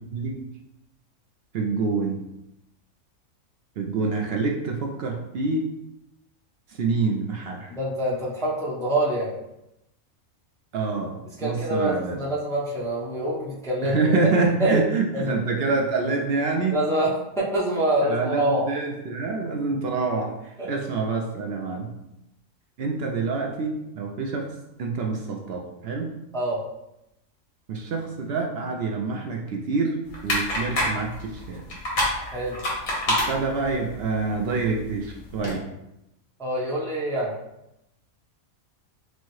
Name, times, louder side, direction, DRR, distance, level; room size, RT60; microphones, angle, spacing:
voice 1, 0.1-0.5 1.5-2.2 3.8-5.7 6.8-7.7 10.7-12.2 13.8-16.8 18.0-20.4 20.6-21.9 22.8-24.5 24.8-26.1 27.7-31.6 33.1-35.7, right 4 dB, 65° right, 1 dB, 0.6 m, -26 dB
voice 2, 7.8-9.3 11.4-14.2 14.6-14.7 15.1-15.3 16.7-18.7 26.3-26.6 32.3-32.6 36.4-37.3, right 1 dB, 5° left, -6 dB, 0.6 m, -25 dB
sound 1, 30.1-35.5, left 1 dB, 75° left, 1.7 m, -29 dB
6.0 x 2.1 x 3.1 m, 0.87 s
omnidirectional pair, 1.4 m